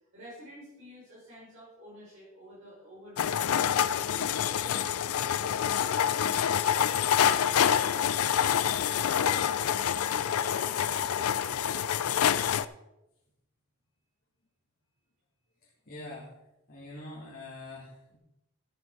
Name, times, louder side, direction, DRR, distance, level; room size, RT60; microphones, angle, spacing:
voice 1, 0.1-4.1 4.5-7.8 8.0-12.6, equal, 60° right, -8 dB, 5.3 m, -49 dB
sound 1, 3.2-12.7, left 9 dB, 75° left, 0.4 m, -27 dB
voice 2, 15.6-16.3 16.7-18.2, left 2 dB, 45° left, -6 dB, 2.4 m, -45 dB
13.0 x 8.1 x 4.7 m, 0.89 s
head